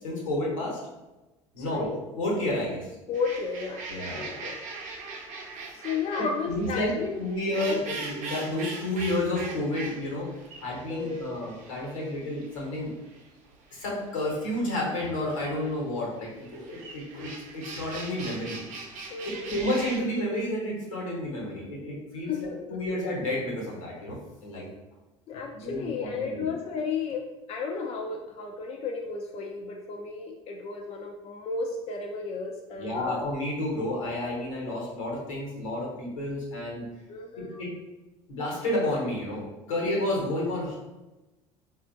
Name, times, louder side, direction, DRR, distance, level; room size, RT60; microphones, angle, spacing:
voice 1, 0.0-0.8 1.5-1.9 2.2-2.9 3.9-4.4 6.2-10.3 10.6-12.9 13.7-18.6 19.2-24.7 25.5-26.5 32.7-36.8 37.4-37.7 38.3-40.8, left 1 dB, 80° left, -3 dB, 1.1 m, -31 dB
voice 2, 1.6-2.0 3.1-3.9 4.1-4.6 5.7-7.2 7.7-7.8 10.9-11.4 19.1-19.5 22.3-22.4 22.9-23.0 25.3-33.2 37.1-37.5, left 5 dB, 40° left, 1 dB, 0.5 m, -33 dB
sound 1, 3.1-20.0, right 3 dB, 50° right, 0.7 m, -41 dB
4.2 x 2.4 x 2.5 m, 1.1 s
hypercardioid pair, 65°, 16 cm